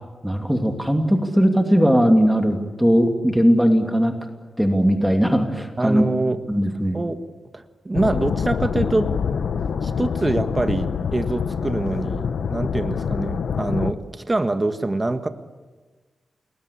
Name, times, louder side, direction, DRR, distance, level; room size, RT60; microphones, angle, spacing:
voice 1, 0.2-4.2 4.6-6.0 6.5-7.0, equal, ahead, 5 dB, 2.7 m, -19 dB
voice 2, 5.8-6.4 6.9-7.2 7.5-9.1 9.8-15.3, right 2 dB, 20° right, 8 dB, 1.6 m, -24 dB
sound 1, 7.9-13.9, left 6 dB, 80° left, 1.1 m, -25 dB
29.5 x 21.0 x 8.6 m, 1.3 s
wide cardioid pair, 100°, 0 cm